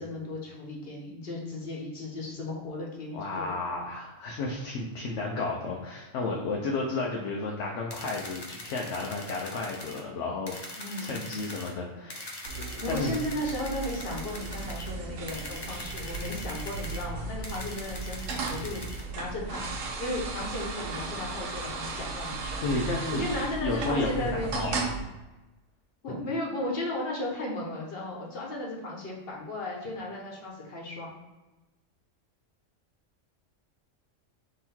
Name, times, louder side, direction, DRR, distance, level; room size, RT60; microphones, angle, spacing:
voice 1, 0.0-3.6 10.7-11.2 12.8-18.8 19.1-19.7 20.0-22.6 23.1-25.0 26.0-31.2, left 1 dB, 50° left, -2 dB, 1.2 m, -35 dB
voice 2, 3.1-10.6 11.0-13.2 22.6-23.2 23.6-24.8, left 3 dB, 70° left, -1 dB, 0.9 m, -32 dB
sound 1, 7.9-10.0 10.5-11.7 12.1-14.9 15.3-17.1 17.4-19.0, left 1 dB, 30° left, 0.5 m, -42 dB
sound 2, 12.4-25.0, right 4 dB, 90° right, 1.1 m, -36 dB
3.9 x 3.1 x 4.3 m, 1.1 s
omnidirectional pair, 1.3 m